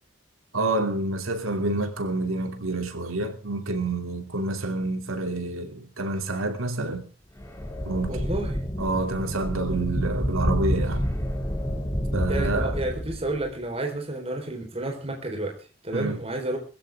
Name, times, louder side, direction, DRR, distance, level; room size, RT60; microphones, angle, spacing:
voice 1, 0.5-7.1 7.8-8.2 8.8-11.1 12.1-12.7 15.9-16.2, right 2 dB, 85° right, 2.7 m, -28 dB
sound 1, 7.4-13.5, equal, 15° left, 3.0 m, -28 dB
voice 2, 8.1-8.6 12.3-16.6, right 1 dB, 30° right, 4.1 m, -31 dB
21.0 x 15.5 x 3.6 m
head